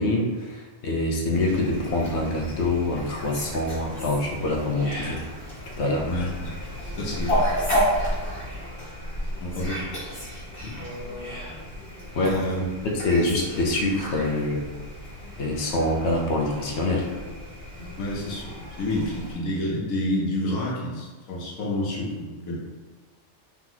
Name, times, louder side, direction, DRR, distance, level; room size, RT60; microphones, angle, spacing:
voice 1, 0.0-5.2 5.7-6.1 10.6-10.8 12.1-12.4 12.8-14.6 15.4-17.1, left 2 dB, 60° left, 0 dB, 0.9 m, -25 dB
Fowl, 1.3-19.3, equal, 45° left, 1.7 m, -32 dB
voice 2, 6.1-6.5 6.8-7.5 9.3-10.0 12.2-12.7 17.9-22.6, left 1 dB, 90° left, -4 dB, 1.4 m, -29 dB
3.6 x 2.9 x 3.9 m, 1.3 s
omnidirectional pair, 1.4 m